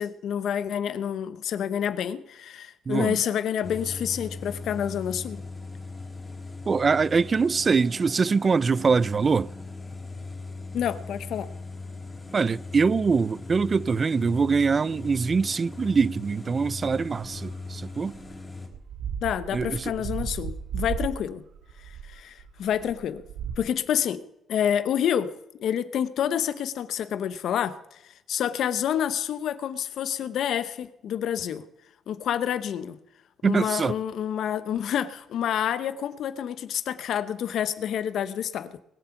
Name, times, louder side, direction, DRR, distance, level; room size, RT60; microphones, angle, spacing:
voice 1, 0.0-5.4 10.7-11.5 19.2-21.4 21.8-23.2 23.6-24.2 24.5-31.7 32.1-33.0 33.4-38.8, left 9 dB, 70° left, 0.9 m, -28 dB
voice 2, 2.9-3.2 6.7-9.5 12.3-18.1 19.5-19.9 33.4-34.0, right 5 dB, 35° right, 0.4 m, -23 dB
sound 1, 3.6-18.7, left 3 dB, 25° left, 3.9 m, -39 dB
sound 2, 17.2-17.6 18.1-18.3 18.7-23.6, right 7 dB, 85° right, 2.1 m, -35 dB
21.5 x 7.8 x 5.9 m
cardioid pair, 90°, 0 cm